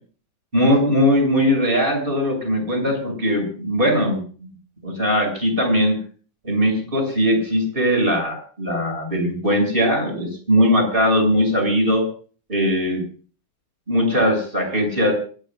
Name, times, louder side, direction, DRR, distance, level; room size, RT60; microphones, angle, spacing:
voice 1, 0.5-4.5 4.8-6.0 6.4-12.0 12.5-13.0 13.9-15.1, equal, 15° right, 3 dB, 7.5 m, -20 dB
26.0 x 19.0 x 2.5 m, 0.40 s
omnidirectional pair, 4.0 m